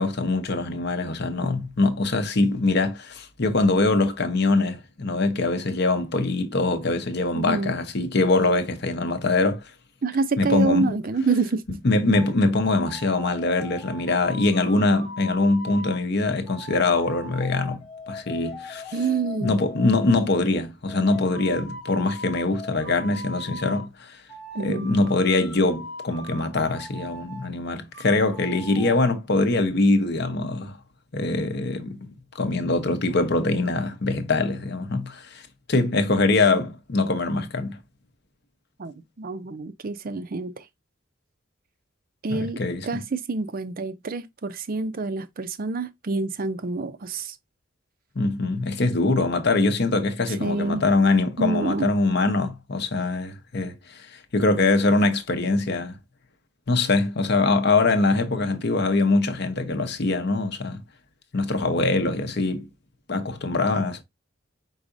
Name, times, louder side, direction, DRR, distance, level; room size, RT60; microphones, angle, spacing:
voice 1, 0.0-9.7 10.4-11.0 11.8-18.9 19.4-24.2 24.6-30.8 31.1-32.0 32.3-35.4 35.7-37.8 42.3-42.9 48.2-56.0 56.7-60.8 61.3-62.7 63.1-64.0, left 3 dB, 55° left, 0.8 m, -23 dB
voice 2, 7.3-7.8 10.0-11.6 18.9-19.5 24.6-24.9 38.8-40.6 42.2-47.4 50.3-50.8 51.4-51.9, right 3 dB, 45° right, 0.5 m, -27 dB
sound 1, 12.1-12.3 12.7-16.0 16.5-20.2 20.9-23.9 24.3-27.5 27.9-28.9, left 2 dB, 30° left, 2.2 m, -40 dB
4.8 x 4.0 x 2.5 m
head